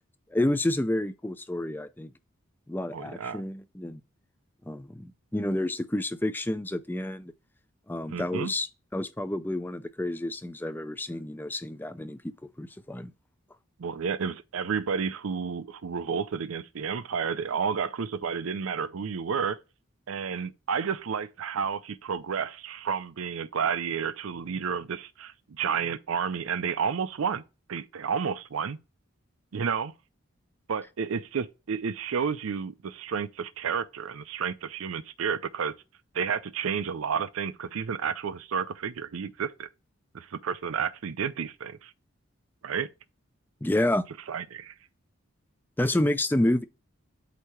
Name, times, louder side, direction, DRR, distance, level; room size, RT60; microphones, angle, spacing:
voice 1, 0.3-2.1 2.7-4.0 4.7-7.3 7.9-12.3 12.6-13.1 43.6-44.1 45.8-46.6, left 1 dB, 10° left, 0.4 m, -29 dB
voice 2, 2.9-3.4 8.1-8.5 13.8-19.6 20.1-27.4 27.7-28.8 29.5-29.9 30.7-35.7 36.1-39.7 40.1-41.9 42.6-42.9 44.3-44.7, right 6 dB, 80° right, 0.5 m, -31 dB
8.2 x 2.8 x 4.4 m
head